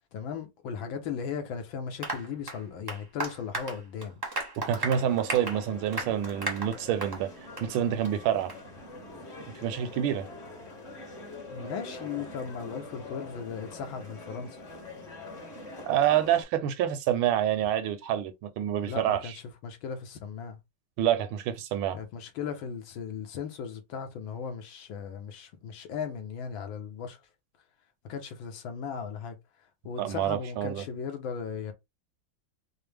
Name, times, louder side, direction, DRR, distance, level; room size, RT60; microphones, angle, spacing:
voice 1, 0.1-4.2 10.2-10.5 11.5-14.6 18.8-19.3 19.6-20.6 21.9-27.2 28.0-29.4 29.8-31.7, left 6 dB, 70° left, 1.6 m, -37 dB
Applause, 2.0-7.2 7.6-7.7 8.0-8.1 8.5-8.6, right 2 dB, 30° right, 0.4 m, -35 dB
sound 1, 4.6-16.4, left 2 dB, 35° left, 1.4 m, -44 dB
voice 2, 4.6-7.3 7.6-8.5 9.6-10.3 15.9-19.3 21.0-22.0 30.0-30.8, right 10 dB, 80° right, 1.4 m, -27 dB
5.0 x 2.1 x 3.3 m
omnidirectional pair, 2.3 m